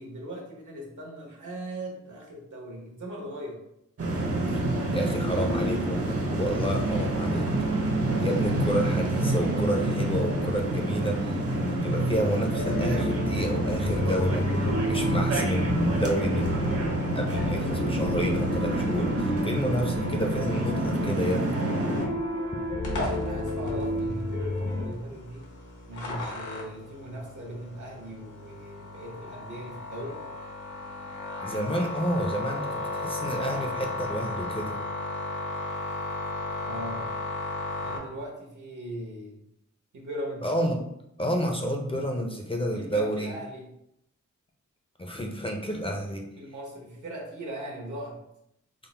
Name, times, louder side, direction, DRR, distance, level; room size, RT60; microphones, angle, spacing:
voice 1, 0.0-3.6 22.9-25.5 25.8-30.2 36.6-37.1 37.8-39.4 39.9-40.5 42.7-43.7 46.4-48.2, right 1 dB, 80° right, -2 dB, 1.1 m, -39 dB
sound 1, 4.0-22.1, right 1 dB, 50° right, 0.7 m, -28 dB
voice 2, 4.9-7.5 8.2-14.5 14.8-21.6 31.4-34.8 40.4-40.8 41.2-43.3 45.0-46.3, equal, 20° left, 1 dB, 0.4 m, -30 dB
sound 2, 12.5-24.9, left 1 dB, 60° left, 0.8 m, -32 dB
sound 3, 22.8-38.0, left 2 dB, 80° left, 1.0 m, -35 dB
3.6 x 2.0 x 4.2 m, 0.79 s
wide cardioid pair, 125°, 30 cm